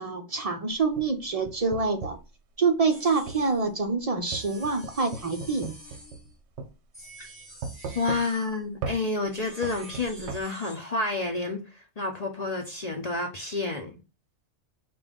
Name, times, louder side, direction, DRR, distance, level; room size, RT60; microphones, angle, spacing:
voice 1, 0.0-2.2 2.6-5.7, right 4 dB, 45° right, 0.5 m, -26 dB
sound 1, 0.7-2.3 3.3-3.4 4.3-6.3 6.6-6.7 7.6-8.5 8.8-9.0 9.6-10.4, right 5 dB, 65° right, 0.9 m, -37 dB
sound 2, 2.9-3.6 4.3-6.4 6.9-8.6 9.2-10.8, right 1 dB, 10° right, 2.2 m, -48 dB
voice 2, 7.9-14.0, left 3 dB, 40° left, 0.7 m, -30 dB
5.2 x 2.5 x 3.6 m
omnidirectional pair, 1.3 m